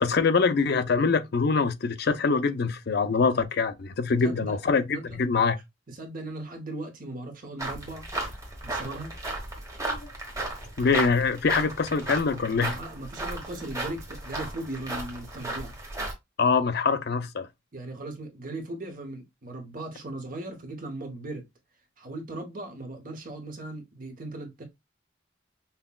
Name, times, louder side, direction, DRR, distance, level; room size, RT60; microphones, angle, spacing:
voice 1, 0.0-5.6 9.9-10.1 10.8-12.8 16.4-17.5, left 4 dB, 50° left, 0.4 m, -24 dB
voice 2, 4.2-4.6 4.9-5.2 5.9-8.1 8.6-9.2 12.6-15.7 17.7-21.5 22.0-24.6, right 2 dB, 45° right, 0.9 m, -38 dB
sound 1, 7.6-16.1, right 2 dB, 15° right, 1.1 m, -35 dB
5.6 x 2.2 x 2.3 m
head